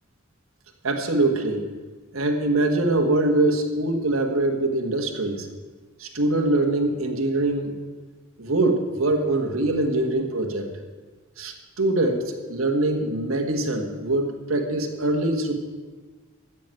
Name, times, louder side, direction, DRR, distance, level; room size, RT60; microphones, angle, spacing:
voice 1, 0.8-1.7 2.1-5.5 6.0-7.8 8.4-10.7 11.4-15.5, right 2 dB, 75° right, 3 dB, 1.6 m, -23 dB
13.5 x 6.2 x 9.0 m, 1.4 s
head